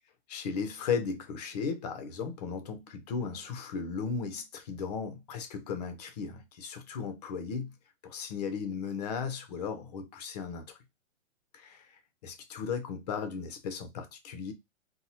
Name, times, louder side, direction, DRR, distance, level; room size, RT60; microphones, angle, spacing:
voice 1, 0.3-7.7 8.0-10.8 11.5-14.5, left 6 dB, 35° left, 0.4 m, -36 dB
2.7 x 2.0 x 2.7 m
hypercardioid pair, 140°, 38 cm